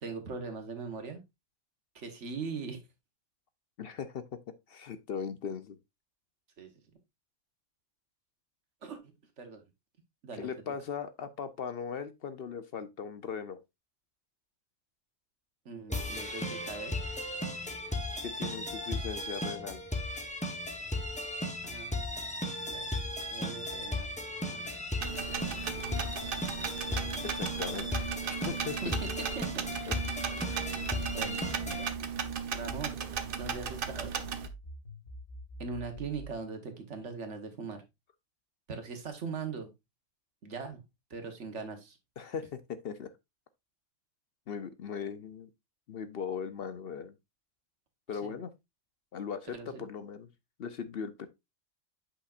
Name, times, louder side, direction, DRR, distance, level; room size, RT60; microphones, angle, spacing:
voice 1, 0.0-1.2 1.9-2.8 6.6-6.7 8.8-9.6 10.2-10.5 15.6-17.0 21.6-24.1 24.5-25.4 28.8-28.9 29.3-29.5 31.1-31.4 31.7-31.9 32.5-33.0 33.4-34.2 35.6-37.8 38.7-39.7 40.4-40.8 41.1-42.0 48.2-48.3 49.5-49.8, right 5 dB, 70° right, 1.6 m, -41 dB
voice 2, 3.8-4.2 4.7-5.8 10.3-13.6 18.2-19.8 27.2-28.8 29.9-30.0 30.3-30.6 42.2-43.1 44.5-45.5 45.9-47.1 48.1-48.5 49.1-50.3 50.6-51.3, left 6 dB, 60° left, 0.8 m, -39 dB
sound 1, 15.9-31.9, left 1 dB, 5° left, 1.0 m, -36 dB
sound 2, 25.0-34.5, right 7 dB, 50° right, 0.9 m, -36 dB
sound 3, 29.9-32.9 33.3-36.4, equal, 85° left, 2.3 m, -47 dB
8.2 x 5.8 x 2.4 m
omnidirectional pair, 1.3 m